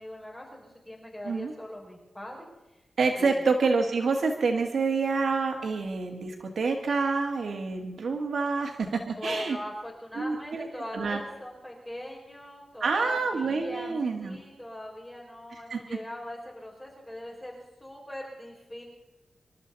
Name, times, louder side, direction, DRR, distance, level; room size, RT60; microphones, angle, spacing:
voice 1, 0.0-2.5 3.2-3.4 9.1-13.9 14.2-18.8, left 1 dB, 10° left, -4 dB, 5.7 m, -40 dB
voice 2, 3.0-9.6 10.2-10.7 10.9-11.2 12.8-14.4 15.5-16.0, right 4 dB, 70° right, 3 dB, 1.8 m, -27 dB
27.0 x 13.0 x 4.1 m, 1.0 s
wide cardioid pair, 135°, 0 cm